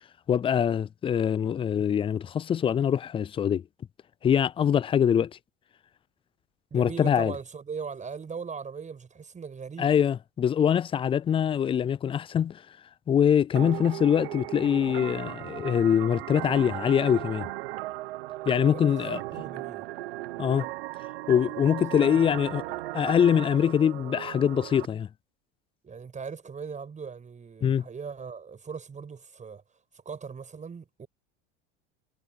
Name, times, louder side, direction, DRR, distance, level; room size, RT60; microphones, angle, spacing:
voice 1, 0.3-3.6 4.2-5.3 6.7-7.3 9.8-12.6 13.1-17.5 18.5-19.2 20.4-20.7 21.3-22.6 22.9-25.1 27.6-27.8, left 8 dB, 20° left, 0.3 m, -24 dB
voice 2, 6.7-9.9 18.7-19.9 21.9-22.2 25.8-31.1, right 5 dB, 25° right, 6.8 m, -39 dB
sound 1, 13.6-24.9, right 19 dB, 85° right, 1.1 m, -37 dB
supercardioid pair, 100°, 29 cm